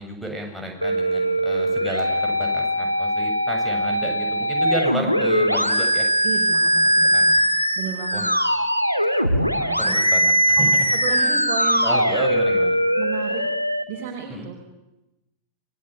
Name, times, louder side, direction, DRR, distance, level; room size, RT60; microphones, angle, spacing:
voice 1, 0.0-6.1 7.1-7.3 8.1-8.3 9.8-10.8 11.1-11.4 11.8-12.7 14.3-14.5, right 1 dB, ahead, 0 dB, 7.7 m, -32 dB
sound 1, 0.8-13.8, equal, 90° right, 2.0 m, -21 dB
voice 2, 6.2-7.4 7.8-8.2 9.3-10.1 10.6-10.7 10.9-11.9 13.0-13.4 13.9-14.6, right 8 dB, 45° right, 0 dB, 5.3 m, -33 dB
29.0 x 21.0 x 9.5 m, 0.96 s
figure-of-eight pair, 90°, 0 cm